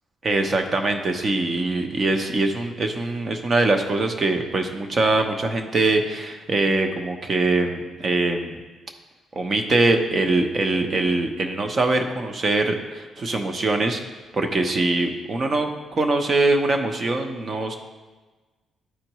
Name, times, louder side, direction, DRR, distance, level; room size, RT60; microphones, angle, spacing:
voice 1, 0.2-8.6 9.3-14.0 14.3-17.7, right 2 dB, 40° right, 5 dB, 0.8 m, -23 dB
11.5 x 4.5 x 3.0 m, 1.3 s
cardioid pair, 90°, 0 cm